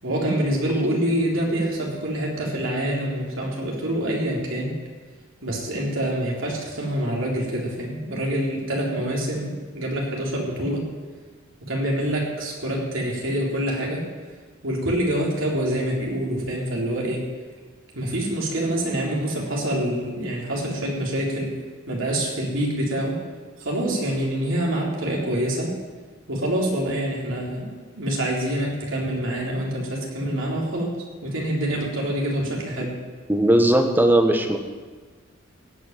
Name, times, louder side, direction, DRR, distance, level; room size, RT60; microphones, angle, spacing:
voice 1, 0.0-4.8 5.4-10.9 11.6-14.1 14.6-17.3 17.9-21.6 21.9-23.2 23.6-25.7 26.3-31.0 31.2-33.0, right 1 dB, 70° right, -3 dB, 3.8 m, -26 dB
voice 2, 33.3-34.6, right 1 dB, 10° right, 4 dB, 1.3 m, -18 dB
17.0 x 6.3 x 9.1 m, 1.4 s
head